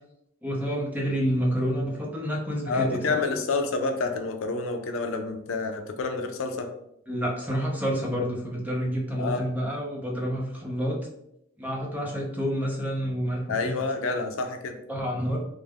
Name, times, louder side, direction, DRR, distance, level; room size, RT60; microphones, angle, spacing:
voice 1, 0.4-3.2 7.1-11.0 11.6-13.7 14.0-14.1 14.9-15.4, equal, 10° right, -2 dB, 0.6 m, -28 dB
voice 2, 2.7-6.7 9.2-9.4 13.5-14.8, left 3 dB, 85° left, 6 dB, 0.5 m, -28 dB
3.3 x 2.1 x 3.5 m, 0.78 s
head